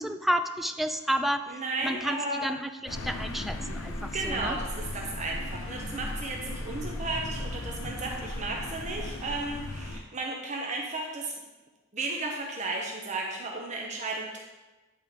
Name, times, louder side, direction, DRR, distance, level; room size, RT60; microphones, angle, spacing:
voice 1, 0.0-1.4 1.8-4.6, equal, ahead, 8 dB, 0.3 m, -31 dB
voice 2, 1.5-2.4 4.1-11.3 11.9-14.4, right 2 dB, 35° right, 0 dB, 0.8 m, -34 dB
sound 1, 2.9-10.0, left 1 dB, 90° left, 0.9 m, -36 dB
10.5 x 3.7 x 5.0 m, 1.2 s
head